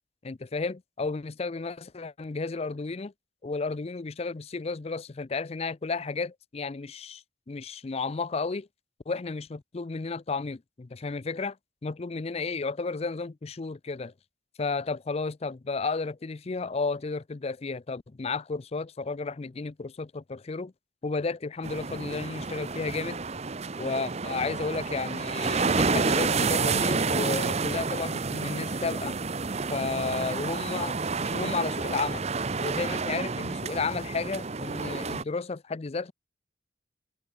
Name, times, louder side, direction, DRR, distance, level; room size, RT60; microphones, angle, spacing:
voice 1, 0.2-3.1 3.4-8.7 9.1-11.6 11.8-14.1 14.6-20.7 21.0-23.2 23.8-29.2 29.7-32.3 32.6-36.1, left 4 dB, 35° left, 0.5 m, -33 dB
sound 1, 21.6-35.2, right 4 dB, 35° right, 0.8 m, -29 dB
head